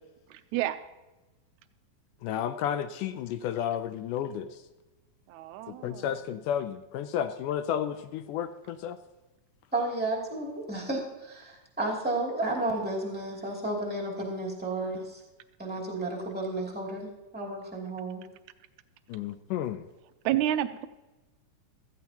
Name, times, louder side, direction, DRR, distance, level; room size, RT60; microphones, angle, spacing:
voice 1, 0.3-0.8 5.3-6.1 20.2-20.9, right 12 dB, 80° right, 10 dB, 1.8 m, -29 dB
voice 2, 2.2-4.6 5.7-9.0 19.1-19.9, left 9 dB, 80° left, 11 dB, 2.0 m, -32 dB
voice 3, 9.7-15.2 15.6-18.2, right 2 dB, 5° right, -2 dB, 2.0 m, -32 dB
15.0 x 14.5 x 2.9 m, 1.1 s
omnidirectional pair, 4.0 m